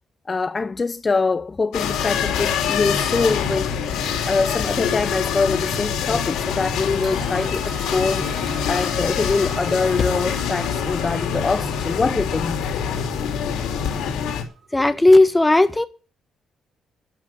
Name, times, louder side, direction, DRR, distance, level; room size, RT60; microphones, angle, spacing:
voice 1, 0.3-12.6, left 4 dB, 30° left, 0.6 m, -24 dB
sound 1, 1.7-14.4, left 7 dB, 90° left, 3.2 m, -25 dB
sound 2, 6.2-6.5 6.8-14.9, right 7 dB, 60° right, 3.3 m, -42 dB
sound 3, 6.7-11.1, left 6 dB, 50° left, 1.2 m, -35 dB
voice 2, 14.7-15.9, left 2 dB, 15° left, 1.4 m, -14 dB
12.0 x 6.8 x 9.6 m
cardioid pair, 90°, 0 cm